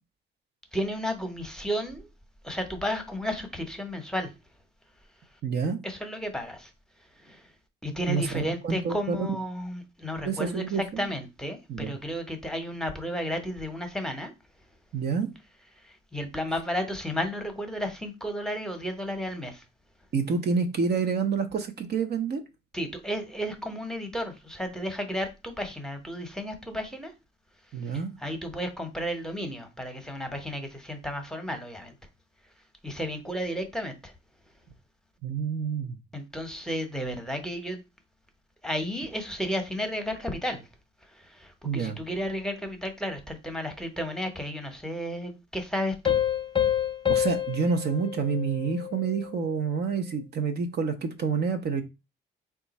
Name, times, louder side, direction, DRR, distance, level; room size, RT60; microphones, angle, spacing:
voice 1, 0.7-2.1 2.4-4.3 5.8-6.7 7.0-7.5 7.8-14.3 15.7-19.6 22.7-27.1 27.8-31.9 32.8-34.1 36.1-37.8 38.6-40.7 41.0-46.2, equal, 5° left, 0.9 m, -33 dB
voice 2, 5.4-5.8 8.1-9.3 10.2-11.1 11.7-11.9 14.9-15.3 20.1-22.4 27.7-28.1 35.2-36.0 41.6-42.0 47.1-51.8, right 5 dB, 55° right, 0.8 m, -28 dB
Piano, 46.1-49.3, left 10 dB, 25° left, 0.6 m, -28 dB
3.6 x 2.4 x 4.1 m
cardioid pair, 90°, 20 cm